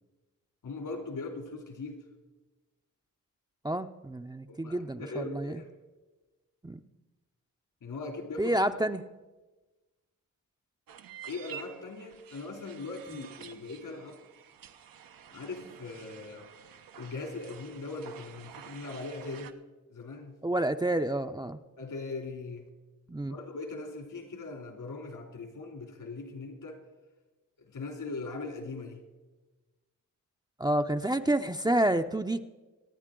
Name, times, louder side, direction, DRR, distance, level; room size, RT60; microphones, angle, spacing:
voice 1, 0.6-2.0 4.5-5.7 7.8-8.5 11.3-14.2 15.3-16.5 16.9-19.5 19.9-20.3 21.8-22.7 23.3-26.8 27.6-29.0, left 3 dB, 75° left, 3 dB, 2.9 m, -40 dB
voice 2, 3.6-5.5 6.6-6.8 8.4-9.0 20.4-21.6 23.1-23.3 30.6-32.4, right 1 dB, 10° right, 7 dB, 0.5 m, -29 dB
sound 1, 10.9-19.5, right 9 dB, 85° right, 0.8 m, -50 dB
25.5 x 9.3 x 3.8 m, 1.2 s
cardioid pair, 70°, 33 cm